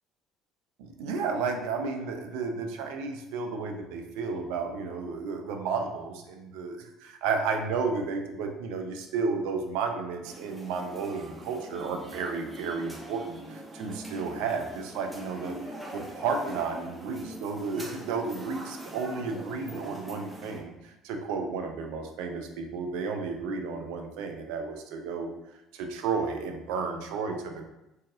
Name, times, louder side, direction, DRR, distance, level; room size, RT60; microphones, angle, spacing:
voice 1, 0.8-15.6 15.9-25.3 25.7-27.6, right 4 dB, 70° right, 4 dB, 0.4 m, -32 dB
sound 1, 10.2-20.6, right 1 dB, 10° right, 0.9 m, -43 dB
3.8 x 2.4 x 2.6 m, 0.92 s
hypercardioid pair, 55°, 0 cm